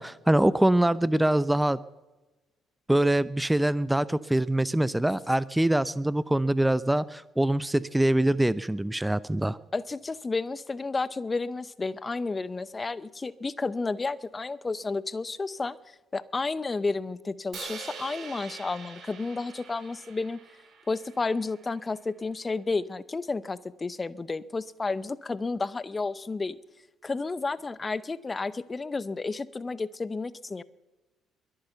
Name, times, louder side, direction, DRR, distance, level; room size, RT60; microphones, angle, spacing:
voice 1, 0.0-1.8 2.9-9.6, right 1 dB, 10° right, 18 dB, 0.6 m, -24 dB
voice 2, 9.7-20.4 20.9-26.6 27.0-30.6, left 3 dB, 25° left, 18 dB, 0.8 m, -31 dB
Crash cymbal, 17.5-21.7, right 6 dB, 55° right, 3.8 m, -44 dB
22.5 x 8.8 x 6.9 m, 1.1 s
hypercardioid pair, 55°, 0 cm